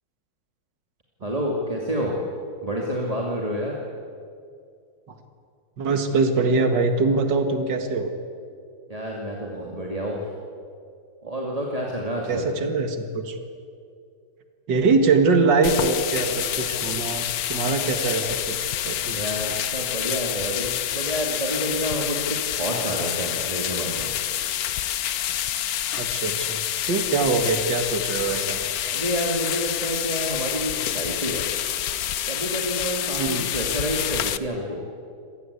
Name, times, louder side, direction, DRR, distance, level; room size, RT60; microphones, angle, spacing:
voice 1, 1.2-2.2 2.6-3.8 8.9-10.2 11.2-12.5 19.1-24.1 28.9-31.5 32.3-34.8, equal, 20° right, -2 dB, 2.4 m, -29 dB
voice 2, 5.8-8.1 12.3-13.4 14.7-19.2 26.0-28.6 33.2-33.5, right 4 dB, 60° right, 6 dB, 2.5 m, -23 dB
sound 1, 15.6-34.4, left 11 dB, 60° left, 1.0 m, -28 dB
26.5 x 18.5 x 8.4 m, 2.4 s
omnidirectional pair, 2.2 m